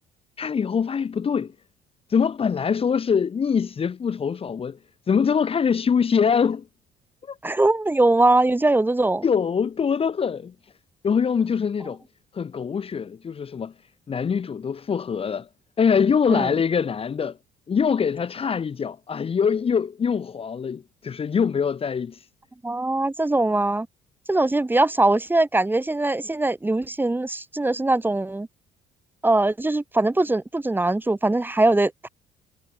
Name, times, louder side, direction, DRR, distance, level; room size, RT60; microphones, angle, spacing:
voice 1, 0.4-1.5 2.1-4.8 5.1-6.7 7.3-7.4 9.2-10.5 11.0-12.0 12.3-13.7 14.1-15.5 15.8-17.4 17.7-22.2, left 6 dB, 35° left, 1.6 m, -23 dB
voice 2, 7.4-9.3 16.3-16.5 22.6-23.9 24.3-28.5 29.2-32.1, right 2 dB, 10° right, 2.4 m, -21 dB
cardioid pair, 110°, 17 cm